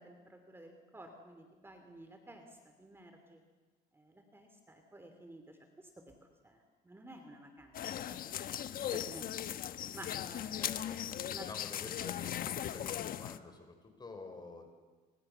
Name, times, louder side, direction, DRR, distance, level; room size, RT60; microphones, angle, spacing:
voice 1, 0.0-3.4 3.9-7.8 8.1-8.5 8.9-9.3 9.9-10.8 11.3-11.5, right 1 dB, 15° right, 5 dB, 3.0 m, -53 dB
sound 1, 7.7-13.4, left 11 dB, 60° left, 1.1 m, -38 dB
voice 2, 10.6-11.0 11.3-13.7 14.0-14.7, left 3 dB, 25° left, 5 dB, 5.4 m, -49 dB
29.5 x 25.5 x 7.0 m, 1.3 s
cardioid pair, 110°, 17 cm